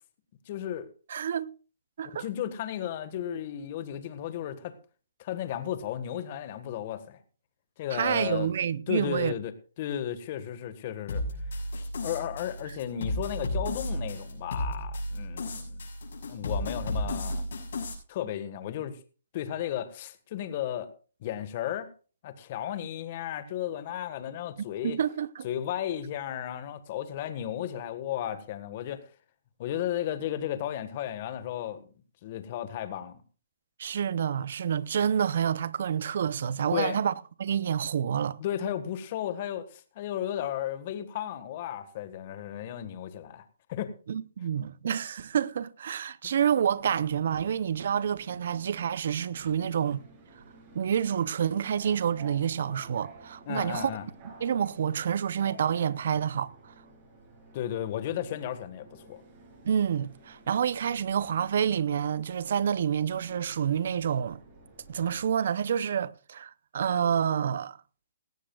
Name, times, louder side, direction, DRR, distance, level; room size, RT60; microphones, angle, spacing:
voice 1, 0.5-0.9 2.2-4.7 5.2-7.2 7.8-8.5 8.9-9.5 9.8-11.2 12.0-15.8 16.3-17.4 18.1-19.0 19.3-20.9 21.2-21.9 22.2-25.0 25.4-29.0 29.6-31.8 32.2-33.2 36.7-37.0 38.4-43.4 43.7-43.9 46.2-46.4 53.5-54.0 57.5-59.2, left 11 dB, 40° left, 1.6 m, -34 dB
voice 2, 1.1-1.5 2.0-2.2 7.9-9.3 24.6-25.5 33.8-37.1 37.4-38.4 44.1-50.0 50.7-53.9 54.2-56.7 59.6-64.4 64.9-67.8, right 8 dB, 60° right, 0.7 m, -28 dB
sound 1, 11.1-17.9, left 1 dB, 65° left, 7.0 m, -33 dB
Subway metro underground, 46.5-65.3, right 3 dB, 30° right, 7.5 m, -52 dB
18.0 x 15.0 x 2.4 m
hypercardioid pair, 155°, 0 cm